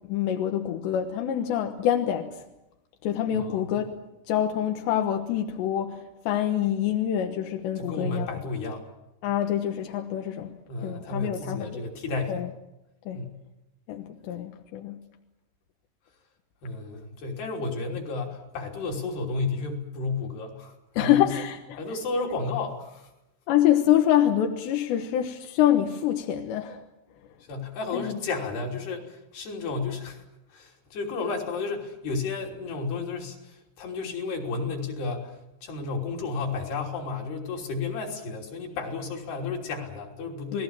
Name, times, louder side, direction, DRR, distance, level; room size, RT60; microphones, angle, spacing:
voice 1, 0.1-2.4 3.0-4.0 4.3-8.3 9.2-11.8 12.3-12.5 13.1-13.2 13.9-15.0 21.0-21.8 23.5-26.8 27.9-28.2 40.5-40.6, left 11 dB, 90° left, 4 dB, 3.4 m, -26 dB
voice 2, 3.3-3.7 7.8-8.9 10.7-12.5 13.1-13.4 16.6-21.3 21.8-23.1 27.5-30.2 30.5-35.4 35.6-40.6, left 3 dB, 70° left, 1 dB, 5.3 m, -32 dB
29.5 x 19.5 x 7.4 m, 0.93 s
omnidirectional pair, 4.9 m